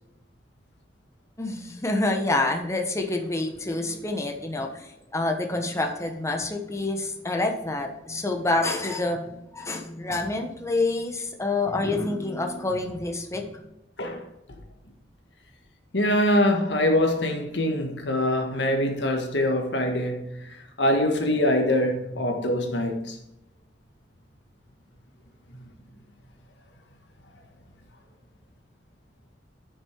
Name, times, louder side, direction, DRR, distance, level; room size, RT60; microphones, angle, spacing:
voice 1, 1.4-13.5, left 2 dB, 15° left, 1.1 m, -27 dB
voice 2, 15.9-23.2, left 1 dB, 85° left, 1.6 m, -24 dB
8.4 x 6.6 x 4.6 m
head